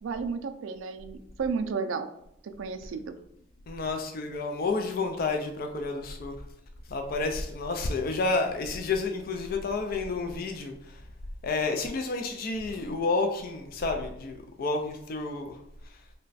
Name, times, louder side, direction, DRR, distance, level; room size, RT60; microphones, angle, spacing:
voice 1, 0.0-2.1 2.4-3.2, right 5 dB, 75° right, 9 dB, 0.3 m, -33 dB
voice 2, 3.7-6.4 6.9-10.7 11.4-15.5, left 3 dB, 45° left, 4 dB, 0.4 m, -30 dB
3.2 x 2.2 x 3.9 m, 0.80 s
head